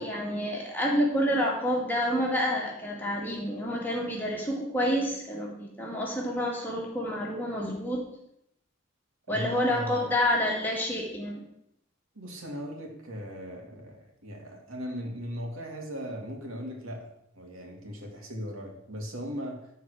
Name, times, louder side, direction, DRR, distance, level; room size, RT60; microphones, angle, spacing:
voice 1, 0.0-8.0 9.3-11.4, equal, 10° left, -3 dB, 2.3 m, -28 dB
voice 2, 9.3-10.1 12.1-19.7, equal, 85° right, 1 dB, 2.4 m, -38 dB
13.0 x 4.6 x 6.4 m, 0.77 s
head